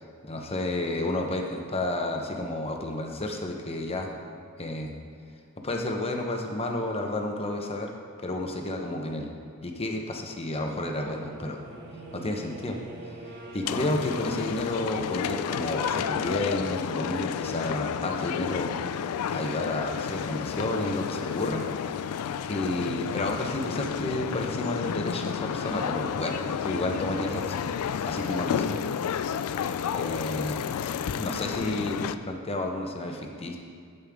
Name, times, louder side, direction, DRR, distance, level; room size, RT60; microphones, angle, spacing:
voice 1, 0.2-4.1 4.6-4.9 5.6-7.9 8.2-9.3 9.6-11.6 12.1-12.8 13.0-13.1 13.5-18.7 19.3-21.6 22.5-28.8 29.9-30.6 31.0-33.6, left 1 dB, 25° left, 2 dB, 0.9 m, -31 dB
sound 1, 10.8-16.8, right 2 dB, 55° right, 1.5 m, -44 dB
sound 2, 13.7-32.2, left 8 dB, 80° left, 0.3 m, -31 dB
15.0 x 5.4 x 3.6 m, 2.3 s
head